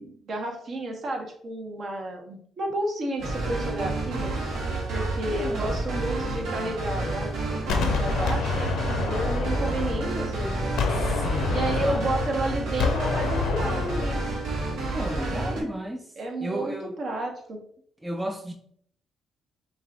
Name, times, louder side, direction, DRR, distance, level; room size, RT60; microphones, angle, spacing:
voice 1, 0.0-4.3 4.9-10.8 11.5-14.2 15.1-15.7 16.2-17.6, right 1 dB, 50° right, 1.1 m, -31 dB
sound 1, 3.2-15.6, right 2 dB, 75° right, 1.4 m, -30 dB
voice 2, 4.9-5.8 10.9-12.1 14.9-16.1 16.4-17.0 18.0-18.5, right 1 dB, 10° right, 0.5 m, -34 dB
Gunshot gunfire, 7.7-10.4 10.8-14.3, left 5 dB, 85° left, 0.7 m, -28 dB
5.4 x 2.5 x 3.5 m
cardioid pair, 90°, 0 cm